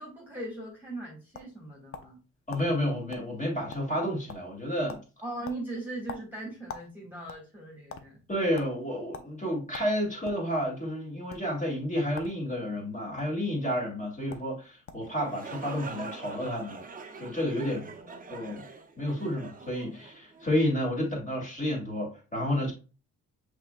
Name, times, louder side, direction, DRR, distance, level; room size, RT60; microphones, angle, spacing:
voice 1, 0.0-2.2 5.2-8.2 17.7-18.6, right 2 dB, 5° right, 1.7 m, -40 dB
sound 1, 0.8-2.2 2.5-2.7 3.1-3.3 3.6-4.0 4.3-4.6 4.9-5.1 5.4-6.9 7.2-8.0 8.6-8.7 9.1-9.3 9.7-10.4 11.2-11.4 12.1-12.4 12.7-13.2 14.0-14.1 14.3-14.5 14.9-15.1, left 5 dB, 45° left, 0.7 m, -43 dB
voice 2, 2.5-5.0 8.3-16.8 17.2-17.9 18.3-18.6 19.0-22.7, equal, 25° left, 2.3 m, -30 dB
sound 2, 15.0-20.7, right 4 dB, 30° right, 0.8 m, -44 dB
5.8 x 3.5 x 2.3 m
cardioid pair, 90°, 30 cm